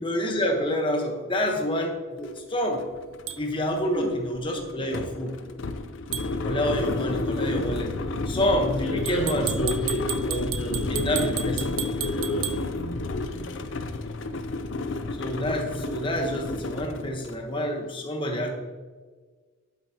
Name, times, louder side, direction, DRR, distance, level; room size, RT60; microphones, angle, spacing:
voice 1, 0.0-2.8 3.4-5.4 6.4-8.0 8.3-9.7 10.3-11.6 15.2-18.5, equal, 25° left, 2 dB, 1.1 m, -28 dB
sound 1, 2.3-2.4 2.7-17.4, left 2 dB, 60° left, 0.6 m, -31 dB
sound 2, 3.3-3.4 6.1-6.3 9.1-12.6, right 12 dB, 85° right, 0.6 m, -33 dB
voice 2, 8.8-10.1 10.6-11.6 12.0-13.5, left 1 dB, 90° left, -1 dB, 1.5 m, -32 dB
8.8 x 8.4 x 2.9 m, 1.4 s
head